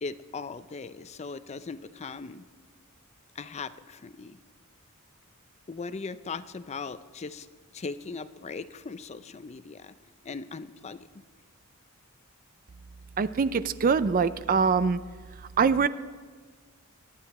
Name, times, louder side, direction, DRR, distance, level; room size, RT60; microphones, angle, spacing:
voice 1, 0.0-2.5 3.4-4.4 5.7-7.5 7.7-9.9 10.2-11.1, left 4 dB, 30° left, 13 dB, 0.5 m, -39 dB
voice 2, 13.2-15.0 15.6-15.9, right 5 dB, 40° right, 15 dB, 0.4 m, -23 dB
23.5 x 10.0 x 4.2 m, 1.5 s
head